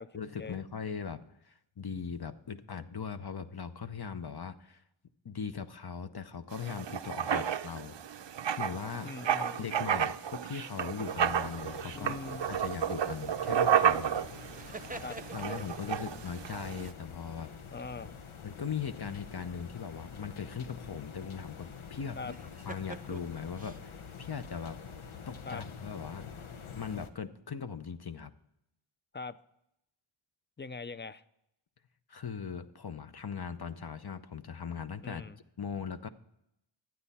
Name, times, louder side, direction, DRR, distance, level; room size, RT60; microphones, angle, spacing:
voice 1, 0.1-4.8 5.2-8.0 8.6-9.1 9.4-14.5 15.3-17.5 18.4-22.3 22.6-24.8 25.3-26.3 26.7-28.3 32.1-35.3 35.6-36.1, left 6 dB, 50° left, 10 dB, 0.7 m, -39 dB
Writing, 6.5-16.9, right 8 dB, 65° right, 0.5 m, -32 dB
voice 2, 9.0-9.6 11.9-12.5 15.0-15.2 17.7-18.1 22.2-22.3 25.5-25.6 29.1-29.4 30.6-31.2 35.0-35.4, left 4 dB, 25° left, 15 dB, 0.4 m, -41 dB
sound 1, 11.0-27.1, left 6 dB, 80° left, 0.8 m, -47 dB
sound 2, 14.6-16.0 19.0-19.6 22.3-23.8, right 3 dB, 15° right, 0.6 m, -46 dB
12.0 x 9.1 x 4.1 m, 0.81 s
wide cardioid pair, 55°, 49 cm